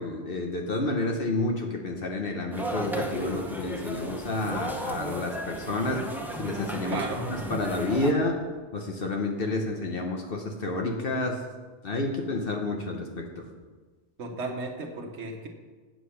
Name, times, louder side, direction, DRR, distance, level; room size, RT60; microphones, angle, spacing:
voice 1, 0.0-8.4 8.7-11.4 11.8-13.5, left 2 dB, 55° left, 2 dB, 1.1 m, -30 dB
sound 1, 2.5-8.1, right 1 dB, ahead, 0.7 m, -34 dB
voice 2, 6.9-7.2 14.2-15.5, right 3 dB, 75° right, 2 dB, 1.5 m, -34 dB
8.4 x 7.5 x 5.7 m, 1.4 s
omnidirectional pair, 1.2 m